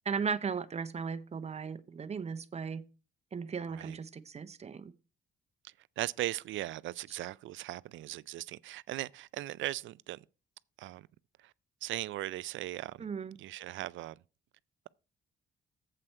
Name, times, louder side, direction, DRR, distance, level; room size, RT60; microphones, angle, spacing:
voice 1, 0.1-2.8 3.3-4.9 7.1-7.2 13.0-13.4, right 6 dB, 35° right, 0.8 m, -36 dB
voice 2, 5.6-10.2 10.8-11.1 11.8-13.0 13.4-14.2, right 15 dB, 75° right, 0.4 m, -38 dB
7.8 x 7.6 x 4.4 m
cardioid pair, 90°, 20 cm